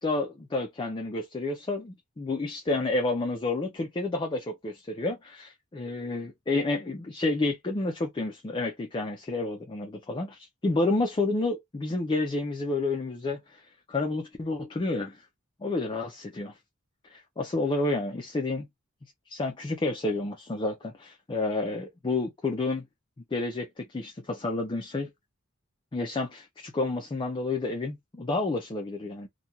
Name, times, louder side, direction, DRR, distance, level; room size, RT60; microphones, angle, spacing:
voice 1, 0.0-13.6 13.9-15.2 15.6-16.5 17.1-18.7 19.3-22.8 23.3-25.1 25.9-29.3, left 2 dB, 25° left, 0.4 m, -30 dB
2.4 x 2.2 x 2.7 m
head